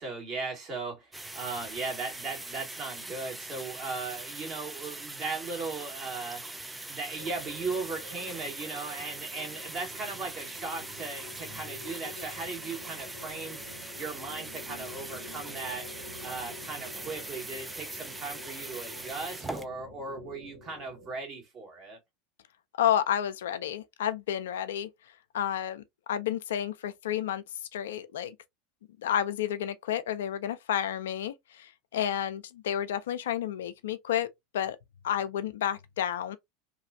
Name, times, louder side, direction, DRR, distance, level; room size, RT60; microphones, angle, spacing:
voice 1, 0.0-6.4 6.9-13.6 13.9-15.9 16.2-22.0, right 4 dB, 40° right, 1.6 m, -37 dB
sound 1, 1.1-19.7, right 2 dB, 10° right, 0.4 m, -42 dB
sound 2, 7.2-21.2, left 2 dB, 70° right, 1.6 m, -48 dB
voice 2, 22.8-24.9 25.3-25.8 26.1-27.4 27.7-28.3 29.0-34.3 34.5-34.8 35.0-36.4, left 10 dB, 70° left, 0.4 m, -30 dB
2.9 x 2.4 x 2.5 m
figure-of-eight pair, 80°, 0 cm